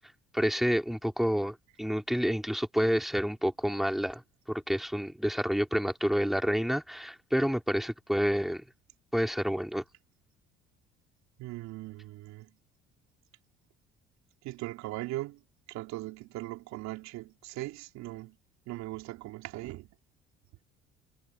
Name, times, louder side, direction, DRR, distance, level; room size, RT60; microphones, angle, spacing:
voice 1, 0.3-4.2 4.5-8.6 9.1-9.8, equal, ahead, 4.4 m, -29 dB
voice 2, 11.4-12.5 14.4-15.4 15.7-18.4 18.7-19.9, right 18 dB, 65° right, 3.4 m, -39 dB
hypercardioid pair, 60°, 29 cm